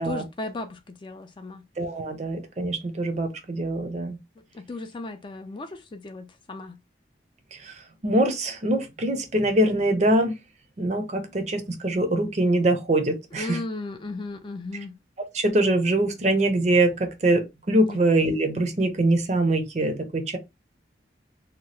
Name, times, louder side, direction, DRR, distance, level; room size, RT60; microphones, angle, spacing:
voice 1, 0.0-1.6 4.5-6.8 13.4-14.9 17.8-18.0, left 2 dB, 25° left, 0.3 m, -35 dB
voice 2, 1.8-4.2 7.5-10.3 10.8-13.6 15.3-20.4, right 1 dB, 40° right, 0.6 m, -23 dB
2.8 x 2.2 x 3.1 m
head